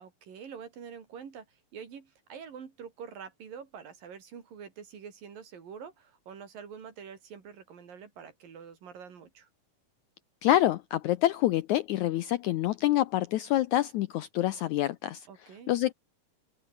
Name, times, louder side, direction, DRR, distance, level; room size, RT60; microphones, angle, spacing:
voice 1, 0.0-9.5 15.3-15.7, right 7 dB, 70° right, 5.1 m, -46 dB
voice 2, 10.4-15.3 15.7-15.9, left 14 dB, 80° left, 1.8 m, -26 dB
open air
omnidirectional pair, 4.1 m